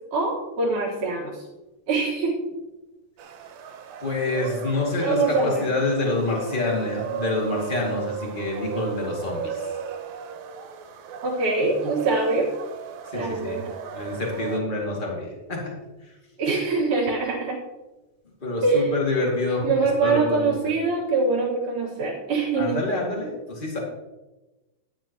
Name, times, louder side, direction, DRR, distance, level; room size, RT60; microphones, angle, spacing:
voice 1, 0.1-1.4 1.9-2.4 5.0-5.7 11.2-12.5 13.1-13.7 16.4-17.6 18.6-18.9 19.6-22.8, right 3 dB, 55° right, -4 dB, 2.8 m, -24 dB
sound 1, 3.2-14.6, right 7 dB, 85° right, 3.0 m, -36 dB
voice 2, 4.0-9.6 13.1-13.6 13.9-16.1 18.4-19.7 20.0-20.7 22.5-23.8, left 2 dB, 30° left, -2 dB, 0.9 m, -27 dB
12.0 x 10.0 x 2.9 m, 1.1 s
omnidirectional pair, 4.9 m